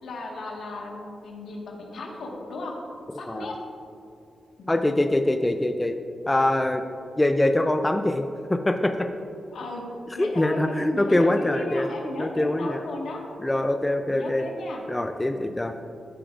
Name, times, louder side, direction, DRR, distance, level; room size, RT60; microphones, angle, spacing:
voice 1, 0.0-2.7 3.1-3.5 4.6-4.8 9.5-9.8 10.1-13.2 14.1-14.8 15.3-15.6, left 2 dB, 80° left, -1 dB, 1.5 m, -35 dB
voice 2, 4.7-6.0 6.3-6.8 7.2-9.1 10.2-11.9 12.2-12.8 13.4-14.4 14.9-15.7, left 1 dB, 20° left, 6 dB, 0.4 m, -23 dB
14.5 x 5.0 x 2.5 m, 2.6 s
cardioid pair, 55°, 0 cm